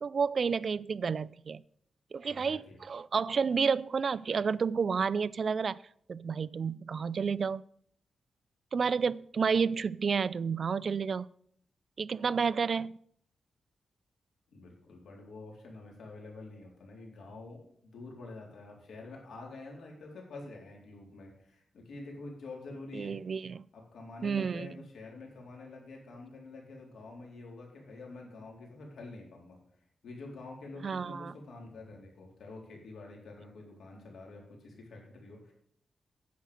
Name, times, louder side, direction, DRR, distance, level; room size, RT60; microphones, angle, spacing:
voice 1, 0.0-1.6 2.1-5.8 6.1-7.6 8.7-11.3 12.0-12.9 22.9-23.6 24.2-24.7 30.8-31.3, right 5 dB, 50° right, 0.3 m, -30 dB
voice 2, 2.3-2.8 14.5-23.2 23.7-29.6 30.0-35.5, left 2 dB, 85° left, 3.9 m, -47 dB
10.5 x 7.7 x 6.5 m
wide cardioid pair, 110°, 0 cm